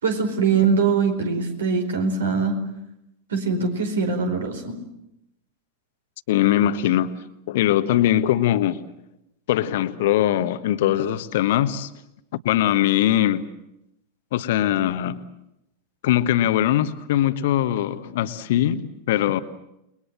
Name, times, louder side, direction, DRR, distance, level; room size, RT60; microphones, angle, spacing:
voice 1, 0.0-2.6 3.3-4.8, right 5 dB, 65° right, 6 dB, 4.8 m, -22 dB
voice 2, 6.3-7.1 7.5-8.8 9.5-11.9 12.4-13.4 14.3-15.2 16.0-19.4, left 12 dB, 55° left, 12 dB, 1.3 m, -21 dB
29.5 x 21.5 x 7.7 m, 0.83 s
figure-of-eight pair, 90°, 0 cm